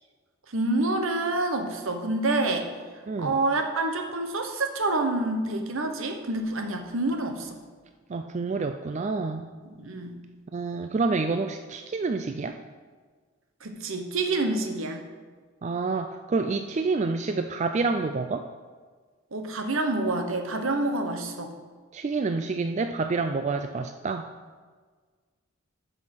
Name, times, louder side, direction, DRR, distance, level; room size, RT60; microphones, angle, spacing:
voice 1, 0.5-2.7 3.2-7.6 9.6-10.2 13.6-15.0 19.3-21.5, right 2 dB, 70° right, 5 dB, 1.1 m, -27 dB
voice 2, 8.1-9.5 10.5-12.6 15.6-18.4 21.9-24.3, right 4 dB, 35° right, 7 dB, 0.3 m, -28 dB
9.6 x 5.5 x 6.1 m, 1.5 s
head